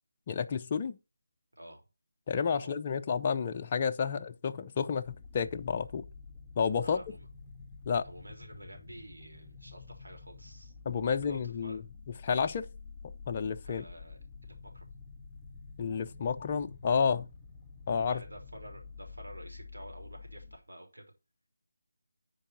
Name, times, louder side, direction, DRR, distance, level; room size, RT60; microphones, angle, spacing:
voice 1, 0.3-1.0 2.3-6.1 6.6-7.0 7.9-8.0 10.9-11.8 12.2-12.7 13.3-13.8 15.8-17.3 17.9-18.2, left 6 dB, 30° left, 0.5 m, -30 dB
sound 1, 5.0-20.6, left 4 dB, 10° left, 1.7 m, -49 dB
voice 2, 6.8-7.3 8.0-10.7 11.1-11.8 13.6-14.9 18.1-21.0, right 1 dB, 80° right, 3.5 m, -50 dB
8.9 x 4.7 x 5.7 m
figure-of-eight pair, 160°, 0 cm